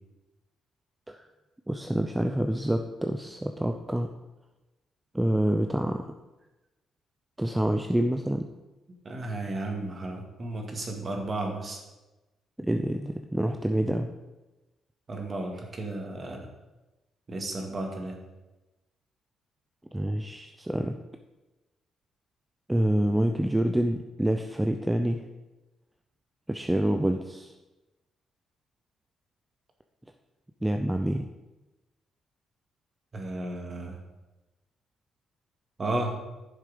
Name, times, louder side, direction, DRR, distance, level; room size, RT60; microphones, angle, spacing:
voice 1, 1.7-4.1 5.1-6.0 7.4-8.5 12.6-14.1 19.9-21.0 22.7-25.3 26.5-27.5 30.6-31.3, right 1 dB, 10° right, 5 dB, 0.6 m, -27 dB
voice 2, 9.0-11.8 15.1-16.5 17.3-18.2 33.1-34.0 35.8-36.1, right 2 dB, 35° right, 2 dB, 2.3 m, -33 dB
11.0 x 6.5 x 5.2 m, 1.1 s
cardioid pair, 90°, 0 cm